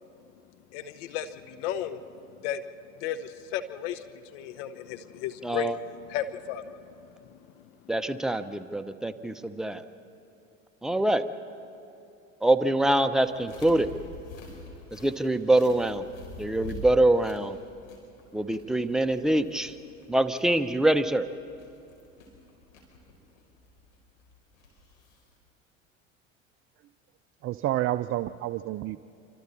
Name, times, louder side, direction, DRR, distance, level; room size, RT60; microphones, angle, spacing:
voice 1, 0.7-2.6 3.0-5.8 6.1-7.7, left 9 dB, 60° left, 11 dB, 1.0 m, -35 dB
voice 2, 5.4-5.8 7.9-9.8 10.8-11.2 12.4-13.9 14.9-16.1 16.4-17.6 18.3-19.8 20.1-21.3, right 1 dB, ahead, 7 dB, 0.9 m, -24 dB
sound 1, 13.2-25.4, left 2 dB, 75° left, 5.0 m, -47 dB
voice 3, 27.4-29.0, right 14 dB, 35° right, 12 dB, 0.5 m, -29 dB
27.5 x 25.0 x 4.2 m, 2.7 s
hypercardioid pair, 75°, 40 cm